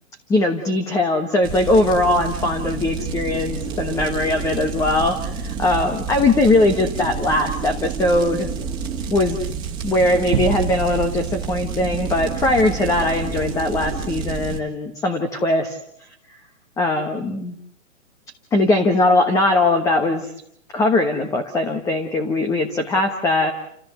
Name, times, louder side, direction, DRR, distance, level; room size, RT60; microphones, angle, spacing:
voice 1, 0.3-8.5 9.1-9.5 9.8-15.8 16.8-17.6 18.5-20.3 20.7-23.5, left 2 dB, 10° left, 6 dB, 1.2 m, -20 dB
sound 1, 1.4-14.6, right 6 dB, 10° right, 2.4 m, -29 dB
sound 2, 10.3-12.9, right 9 dB, 25° right, 1.9 m, -29 dB
29.5 x 15.5 x 8.1 m, 0.73 s
hypercardioid pair, 155°, 39 cm